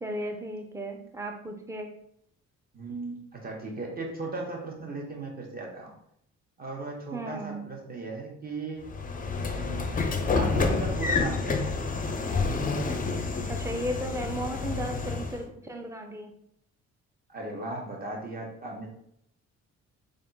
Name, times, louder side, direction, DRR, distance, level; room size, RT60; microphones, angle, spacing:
voice 1, 0.0-1.9 7.1-7.6 13.5-16.3, right 1 dB, 10° right, 3 dB, 0.6 m, -35 dB
voice 2, 2.7-5.9 6.6-8.9 9.5-10.0 10.3-11.7 17.3-18.9, right 3 dB, 30° right, -1 dB, 1.3 m, -36 dB
Train / Sliding door, 8.9-15.4, left 4 dB, 30° left, 0.5 m, -29 dB
3.4 x 2.5 x 4.1 m, 0.70 s
cardioid pair, 90°, 30 cm